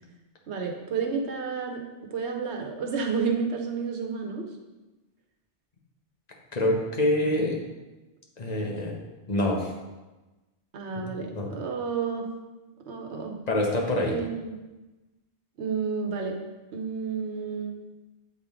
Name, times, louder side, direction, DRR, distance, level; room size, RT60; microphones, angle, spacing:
voice 1, 0.5-1.8 2.1-4.5 10.7-12.3 12.9-13.4 14.1-14.6 15.6-16.4 16.7-17.7, right 5 dB, 80° right, 2 dB, 1.1 m, -30 dB
voice 2, 6.5-7.6 8.4-9.0 9.3-9.7 11.3-11.5 13.5-14.2, left 1 dB, 40° left, 0 dB, 1.0 m, -25 dB
8.3 x 3.7 x 3.5 m, 1.1 s
omnidirectional pair, 1.1 m